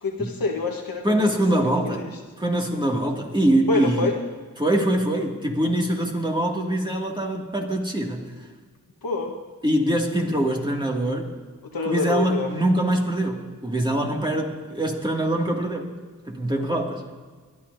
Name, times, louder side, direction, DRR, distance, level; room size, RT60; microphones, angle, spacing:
voice 1, 0.0-1.3 1.8-2.2 3.7-4.2 9.0-9.3 11.7-12.5, left 3 dB, 75° left, 0 dB, 1.4 m, -26 dB
voice 2, 1.0-2.1 2.4-4.1 4.6-8.3 9.6-11.3 11.9-15.9 16.3-17.1, right 1 dB, 15° right, -1 dB, 2.3 m, -23 dB
21.0 x 11.5 x 2.7 m, 1.5 s
cardioid pair, 50°, 35 cm